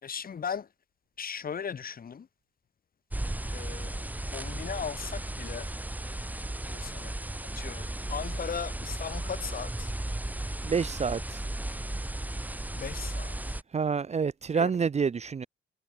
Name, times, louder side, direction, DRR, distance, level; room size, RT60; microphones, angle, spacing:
voice 1, 0.0-0.7 1.2-2.3 3.5-5.7 6.7-7.2 7.5-9.9 12.8-13.3 14.5-14.7, left 7 dB, 45° left, 5.1 m, -37 dB
sound 1, 3.1-13.6, right 1 dB, 10° right, 2.0 m, -35 dB
voice 2, 10.6-11.4 13.7-15.5, right 6 dB, 35° right, 0.9 m, -28 dB
cardioid pair, 90°, 20 cm